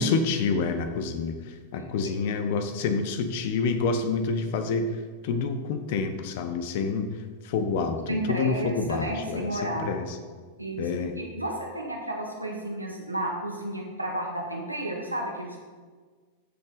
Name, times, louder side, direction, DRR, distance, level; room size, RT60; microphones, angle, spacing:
voice 1, 0.0-4.9 5.2-7.2 7.4-10.1 10.8-11.2, left 4 dB, 50° left, 8 dB, 1.1 m, -28 dB
voice 2, 8.1-10.1 10.6-15.6, right 1 dB, 85° right, 0 dB, 1.8 m, -32 dB
14.0 x 6.4 x 4.1 m, 1.5 s
figure-of-eight pair, 90°, 0 cm